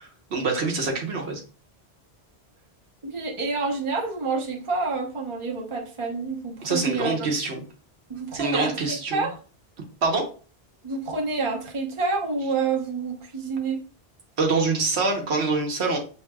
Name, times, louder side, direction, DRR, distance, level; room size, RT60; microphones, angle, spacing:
voice 1, 0.0-1.4 6.6-7.6 8.3-9.3 10.0-10.3 14.4-16.0, right 3 dB, 90° right, 1 dB, 1.3 m, -25 dB
voice 2, 3.0-7.1 8.1-9.4 10.8-13.8, right 4 dB, 30° right, -1 dB, 1.0 m, -28 dB
6.1 x 3.6 x 2.3 m, 0.38 s
omnidirectional pair, 1.1 m